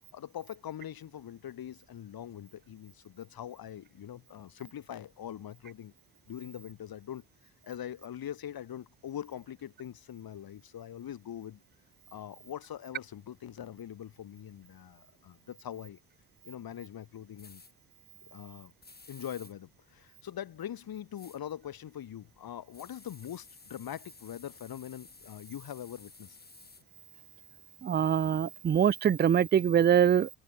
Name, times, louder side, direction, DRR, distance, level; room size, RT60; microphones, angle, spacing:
voice 1, 0.1-5.9 6.3-11.6 12.1-16.0 16.4-17.6 18.2-18.7 19.1-26.4, left 10 dB, 55° left, 7.6 m, -43 dB
sound 1, 17.4-17.7 18.8-19.5 21.1-21.4 22.7-26.8, left 3 dB, 20° left, 6.1 m, -54 dB
voice 2, 27.8-30.3, right 9 dB, 25° right, 0.5 m, -24 dB
supercardioid pair, 70°, 42 cm